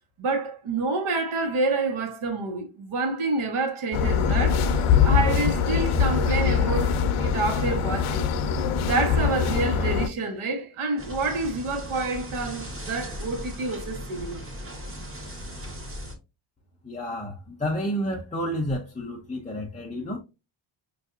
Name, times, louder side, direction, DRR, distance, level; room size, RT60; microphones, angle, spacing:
voice 1, 0.2-8.3 8.7-14.4, right 3 dB, 75° right, 1.1 m, -28 dB
sound 1, 3.9-10.1, left 6 dB, 80° left, 0.6 m, -23 dB
sound 2, 11.0-16.2, equal, 25° right, 0.9 m, -38 dB
voice 2, 16.8-20.2, equal, 15° left, 0.4 m, -30 dB
5.4 x 2.6 x 2.3 m
wide cardioid pair, 175°, 50 cm